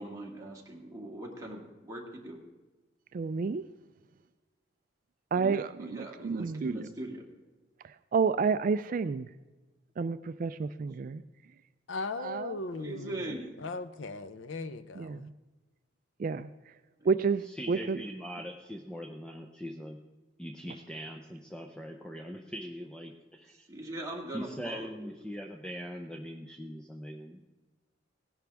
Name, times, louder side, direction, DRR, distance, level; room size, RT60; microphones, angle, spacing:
voice 1, 0.0-2.4 5.8-7.3 12.8-13.5 17.0-17.1 23.7-25.1, right 1 dB, 15° right, -1 dB, 2.0 m, -41 dB
voice 2, 3.1-3.6 5.3-6.8 7.8-9.3 10.0-11.2 12.2-12.6 12.9-13.0 15.0-15.3 16.2-16.5 17.0-18.0, right 5 dB, 45° right, 12 dB, 0.3 m, -30 dB
voice 3, 11.9-15.3, left 3 dB, 90° left, 13 dB, 0.7 m, -38 dB
voice 4, 17.4-20.0 20.4-23.7 24.3-27.4, equal, 5° left, 3 dB, 0.6 m, -41 dB
17.5 x 11.0 x 3.5 m, 1.2 s
head